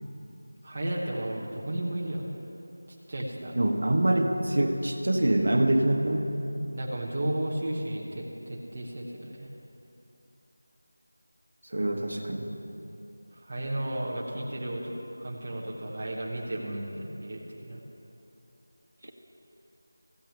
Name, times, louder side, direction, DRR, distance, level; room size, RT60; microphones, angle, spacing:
voice 1, 0.6-2.3 3.1-3.6 6.7-9.5 13.3-17.8, right 1 dB, 20° right, -4 dB, 0.9 m, -33 dB
voice 2, 3.5-6.4 11.7-12.5, right 1 dB, 65° right, 4 dB, 1.2 m, -25 dB
15.0 x 6.1 x 8.7 m, 2.9 s
figure-of-eight pair, 180°, 0 cm